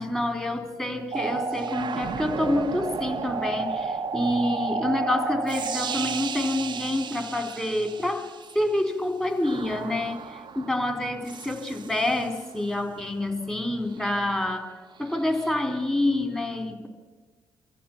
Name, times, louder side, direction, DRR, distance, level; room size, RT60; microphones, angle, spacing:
voice 1, 0.0-10.2 10.5-16.9, left 1 dB, 10° left, 3 dB, 4.2 m, -27 dB
sound 1, 1.1-8.7 9.4-12.4 15.1-15.5, right 5 dB, 50° right, 1.0 m, -32 dB
25.0 x 14.5 x 7.4 m, 1.4 s
hypercardioid pair, 45°, 10 cm